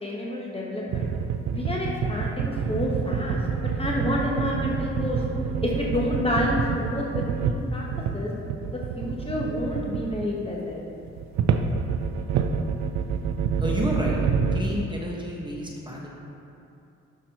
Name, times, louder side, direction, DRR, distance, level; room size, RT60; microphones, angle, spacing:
voice 1, 0.0-1.1 1.5-3.4 3.8-5.2 5.6-7.8 8.1-8.3 8.7-10.8, left 1 dB, 20° left, -3 dB, 1.2 m, -29 dB
sound 1, 0.9-8.2 8.4-10.3 11.0-14.6, right 6 dB, 65° right, 0.5 m, -27 dB
voice 2, 13.6-14.2 14.5-16.1, equal, 15° right, -3 dB, 1.3 m, -30 dB
11.0 x 6.2 x 2.9 m, 2.7 s
cardioid pair, 90°, 30 cm